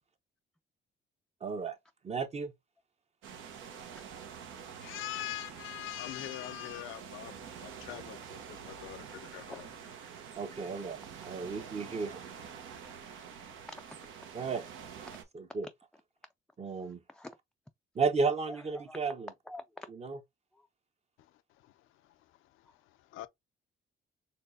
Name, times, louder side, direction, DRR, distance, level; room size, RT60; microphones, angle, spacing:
voice 1, 1.4-1.8 2.0-2.5 10.4-12.2 14.3-14.6 15.3-15.7 16.6-17.0 17.9-19.3 19.9-20.2, right 4 dB, 35° right, 0.8 m, -33 dB
sound 1, 3.2-15.2, right 7 dB, 85° right, 1.0 m, -47 dB
voice 2, 4.5-9.7 10.0-10.4 21.2-23.3, left 15 dB, 85° left, 0.5 m, -44 dB
voice 3, 16.8-17.4 18.5-19.9 20.5-20.7, left 1 dB, 5° left, 0.3 m, -47 dB
4.4 x 3.2 x 2.6 m
cardioid pair, 90°, 20 cm